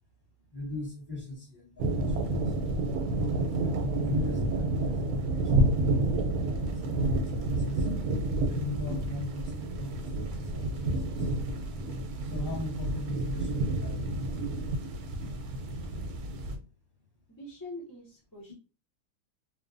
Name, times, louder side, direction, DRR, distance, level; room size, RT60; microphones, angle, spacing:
voice 1, 0.5-2.5 3.6-5.9 6.8-7.9 8.5-11.3 12.2-14.8 15.1-15.3, left 3 dB, 15° left, -4 dB, 1.1 m, -40 dB
sound 1, 1.8-16.6, right 2 dB, 90° right, 1.1 m, -29 dB
voice 2, 17.3-18.5, left 1 dB, 35° left, -5 dB, 0.3 m, -44 dB
2.8 x 2.1 x 2.5 m, 0.33 s
omnidirectional pair, 1.6 m